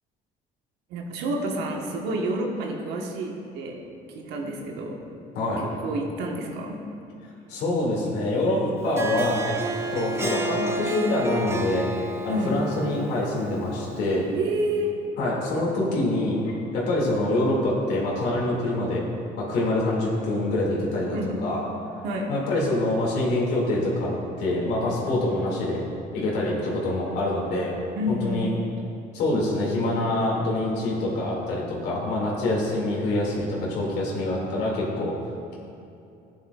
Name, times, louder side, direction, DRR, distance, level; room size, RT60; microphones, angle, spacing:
voice 1, 0.9-3.8 4.1-5.0 5.6-6.9 12.3-12.6 14.3-14.9 21.1-21.4 22.0-22.3 28.0-28.5, right 1 dB, 85° right, 1 dB, 1.3 m, -29 dB
voice 2, 7.5-9.6 9.9-11.9 12.2-14.2 15.2-16.4 16.7-19.0 19.4-21.2 21.4-21.6 22.3-24.1 24.4-25.8 26.1-27.7 28.1-28.5 29.1-35.1, left 1 dB, 85° left, -4 dB, 2.3 m, -25 dB
Harp, 8.8-14.2, right 1 dB, 15° right, 0.7 m, -31 dB
12.0 x 9.4 x 2.4 m, 2.7 s
cardioid pair, 110°, 17 cm